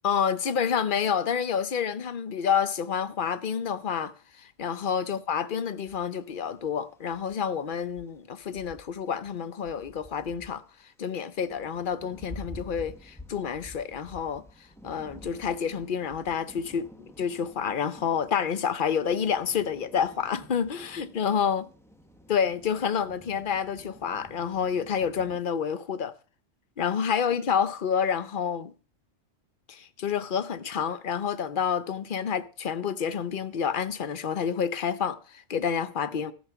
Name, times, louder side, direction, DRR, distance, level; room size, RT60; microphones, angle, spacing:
voice 1, 0.0-10.6 11.0-14.4 14.8-16.9 17.2-21.7 22.3-26.1 26.8-28.7 29.7-36.3, left 7 dB, 50° left, 0.8 m, -28 dB
sound 1, 5.9-6.7 7.0-9.4 9.6-25.4, left 1 dB, ahead, 1.0 m, -49 dB
14.5 x 5.7 x 6.9 m
omnidirectional pair, 1.2 m